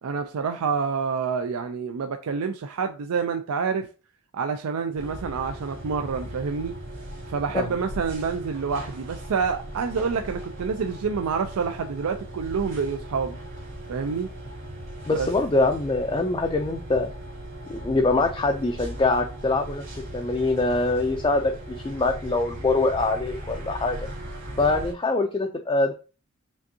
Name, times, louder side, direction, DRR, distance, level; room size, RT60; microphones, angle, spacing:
voice 1, 0.0-3.9 4.3-6.7 7.3-13.4 13.9-14.3 15.1-15.3, right 5 dB, 90° right, 0.4 m, -27 dB
sound 1, 5.0-24.9, right 1 dB, 55° right, 2.2 m, -38 dB
voice 2, 15.1-17.1 17.7-19.8 20.1-24.0 24.6-25.9, left 2 dB, 20° left, 0.3 m, -24 dB
5.2 x 3.5 x 2.7 m
head